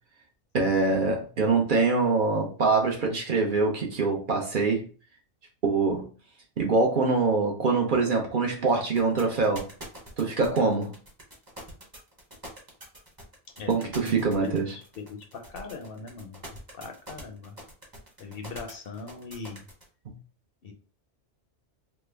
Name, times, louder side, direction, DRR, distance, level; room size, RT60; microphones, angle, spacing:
voice 1, 0.5-4.9 5.6-6.0 6.6-9.6 10.2-10.9 13.7-14.7 20.1-20.2, right 4 dB, 55° right, 0.7 m, -24 dB
sound 1, 8.9-19.8, right 1 dB, 20° right, 0.8 m, -44 dB
voice 2, 15.0-16.4 16.7-17.5 18.2-19.6 20.6-20.7, left 4 dB, 60° left, 0.7 m, -39 dB
3.2 x 2.1 x 3.3 m
omnidirectional pair, 1.2 m